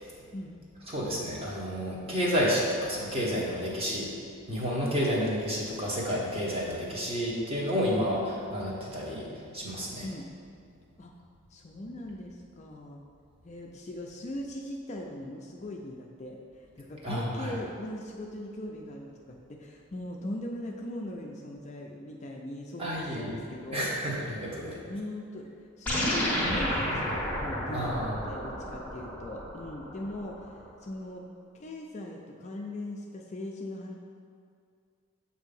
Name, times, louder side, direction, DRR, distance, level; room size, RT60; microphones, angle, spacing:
voice 1, 0.9-10.1 17.0-17.6 22.8-23.4 23.7-24.8 27.7-28.2, equal, 25° right, -4 dB, 1.0 m, -30 dB
voice 2, 11.5-13.0 13.4-23.9 24.5-25.5 25.8-30.5 30.8-31.3 31.5-34.0, left 1 dB, 30° left, 0 dB, 0.4 m, -39 dB
sound 1, 25.9-30.5, equal, 5° left, 0.8 m, -32 dB
7.8 x 2.7 x 5.2 m, 2.3 s
head